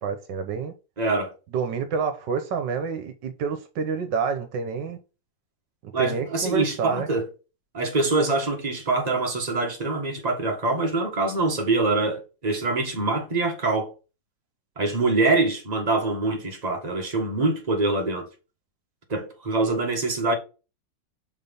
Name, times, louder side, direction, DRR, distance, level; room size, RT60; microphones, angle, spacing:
voice 1, 0.0-0.7 1.5-5.0 5.8-7.1, right 6 dB, 75° right, 1.5 m, -28 dB
voice 2, 1.0-1.3 5.9-7.3 7.7-13.9 14.8-18.3 19.1-20.3, right 3 dB, 25° right, 1.5 m, -24 dB
6.1 x 4.0 x 5.3 m
omnidirectional pair, 2.0 m